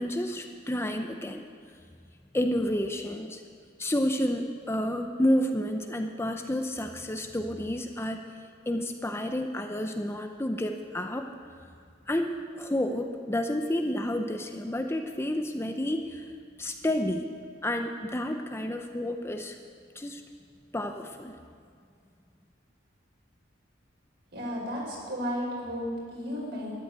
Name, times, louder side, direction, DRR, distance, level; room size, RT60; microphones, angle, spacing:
voice 1, 0.0-1.4 2.3-3.4 3.8-8.2 8.7-11.3 12.1-16.3 16.6-17.3 17.6-19.6 20.0-20.2 20.7-21.4, left 1 dB, 15° left, 5 dB, 0.6 m, -30 dB
voice 2, 24.3-26.7, equal, 60° right, -3 dB, 5.1 m, -33 dB
13.0 x 11.0 x 8.3 m, 2.2 s
head